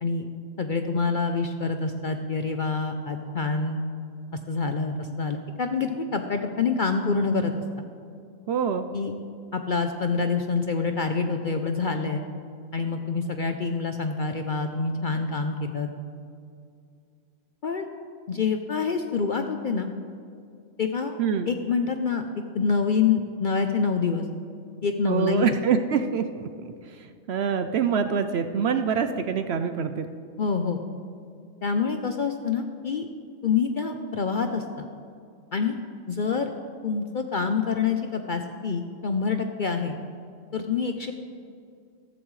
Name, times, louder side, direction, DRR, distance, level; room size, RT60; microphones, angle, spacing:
voice 1, 0.6-3.8 4.5-7.6 8.9-9.1 9.5-12.2 12.7-15.9 17.6-17.9 18.3-19.9 20.8-21.2 21.5-22.2 22.5-24.2 24.8-25.5 30.4-30.8 31.6-33.1 33.4-34.9 35.5-35.8 36.1-36.5 36.8-40.0 40.5-41.1, left 5 dB, 55° left, 6 dB, 0.6 m, -26 dB
voice 2, 8.5-8.9 21.2-21.5 25.0-26.5 26.9-30.1, right 7 dB, 65° right, 9 dB, 0.7 m, -25 dB
14.0 x 14.0 x 3.2 m, 2.4 s
omnidirectional pair, 1.4 m